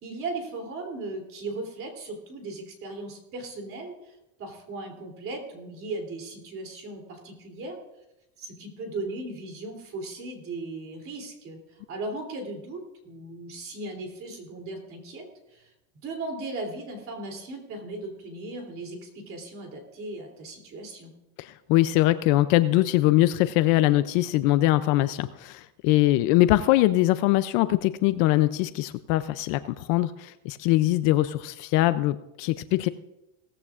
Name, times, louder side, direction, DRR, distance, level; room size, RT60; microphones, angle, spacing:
voice 1, 0.0-7.8 8.4-15.7 16.0-21.1, right 2 dB, 35° right, 3 dB, 3.0 m, -37 dB
voice 2, 21.4-32.9, left 16 dB, 50° left, 13 dB, 0.5 m, -22 dB
18.0 x 14.5 x 2.4 m, 0.90 s
supercardioid pair, 155°, 38 cm